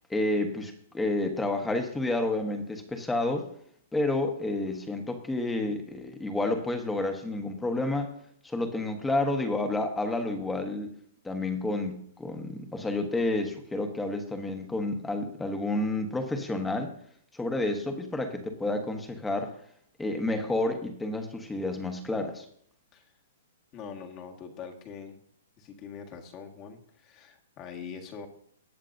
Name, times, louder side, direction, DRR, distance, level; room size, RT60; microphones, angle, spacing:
voice 1, 0.1-3.5 3.9-8.1 8.4-10.9 11.2-16.9 17.3-19.6 20.0-22.4, left 2 dB, 5° left, 5 dB, 1.3 m, -30 dB
voice 2, 23.7-25.2 25.6-28.3, left 6 dB, 30° left, 3 dB, 1.7 m, -43 dB
19.0 x 7.4 x 2.7 m, 0.66 s
hypercardioid pair, 140°, 0 cm